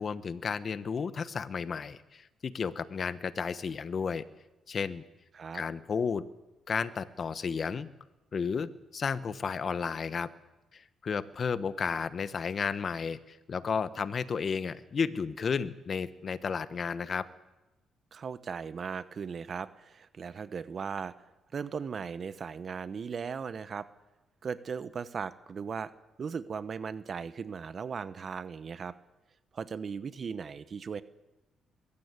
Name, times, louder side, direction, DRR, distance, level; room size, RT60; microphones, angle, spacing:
voice 1, 0.0-4.3 4.7-5.0 5.5-6.3 6.7-7.9 8.3-10.3 10.7-17.3, left 6 dB, 45° left, 15 dB, 1.1 m, -33 dB
voice 2, 18.1-21.1 21.5-23.9 24.4-25.9 26.2-28.9 29.5-31.0, right 6 dB, 45° right, 14 dB, 0.9 m, -37 dB
21.5 x 15.5 x 8.2 m, 1.0 s
cardioid pair, 90°, 0 cm